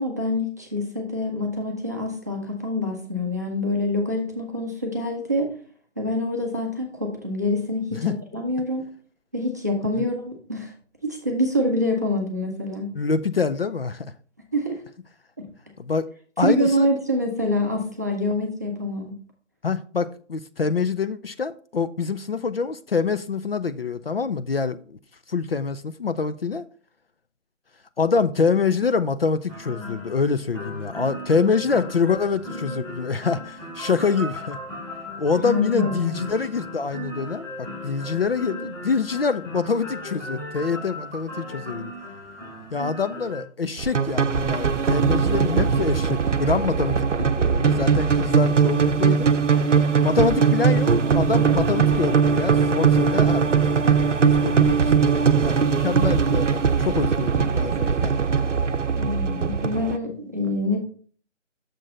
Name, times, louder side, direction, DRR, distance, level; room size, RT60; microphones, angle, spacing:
voice 1, 0.0-5.5 6.0-8.9 9.3-10.7 11.0-12.9 14.5-14.8 15.4-15.5 16.4-19.2 31.4-31.5 35.4-36.2 58.9-60.8, left 1 dB, 15° right, 0.6 m, -26 dB
voice 2, 12.9-14.1 15.8-16.1 16.4-16.9 19.6-25.0 25.3-26.6 28.0-34.6 35.2-41.9 42.7-49.3 50.0-54.0 54.2-58.2, left 5 dB, 55° left, 0.5 m, -25 dB
sound 1, 29.5-43.4, equal, 5° left, 2.6 m, -37 dB
sound 2, 43.8-60.0, right 6 dB, 80° right, 0.7 m, -20 dB
6.6 x 6.0 x 3.8 m
figure-of-eight pair, 155°, 36 cm